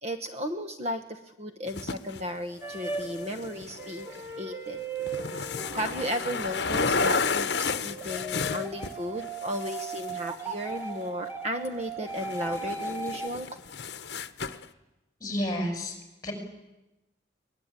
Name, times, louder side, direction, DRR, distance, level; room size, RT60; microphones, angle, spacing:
voice 1, 0.0-4.8 5.4-13.6, equal, 35° right, 7 dB, 1.1 m, -35 dB
sound 1, 1.7-2.2 2.8-4.3 4.8-8.9 9.2-10.8 11.6-11.7 12.1-14.7, left 4 dB, 65° left, 0.9 m, -32 dB
sound 2, 2.6-6.9 7.6-13.3, right 3 dB, 10° right, 1.5 m, -37 dB
voice 2, 15.2-15.9 16.2-16.3, left 1 dB, 20° left, 4 dB, 6.1 m, -30 dB
23.0 x 20.5 x 9.0 m, 1.0 s
head